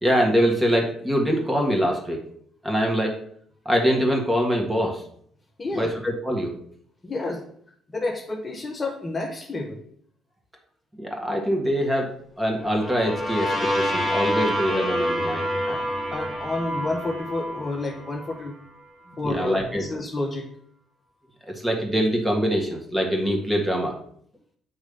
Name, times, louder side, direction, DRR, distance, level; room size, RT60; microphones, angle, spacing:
voice 1, 0.0-2.2 2.6-3.2 3.6-5.0 5.8-6.6 11.0-12.1 12.4-15.5 19.2-19.8 21.5-23.9, equal, 10° right, 1 dB, 1.6 m, -24 dB
voice 2, 5.6-6.0 7.0-7.5 7.9-9.8 15.6-18.6 19.2-20.6, left 2 dB, 30° left, 1 dB, 1.0 m, -30 dB
sound 1, 12.6-18.5, equal, 5° left, 1.7 m, -27 dB
8.0 x 3.2 x 5.1 m, 0.63 s
cardioid pair, 100°, 0 cm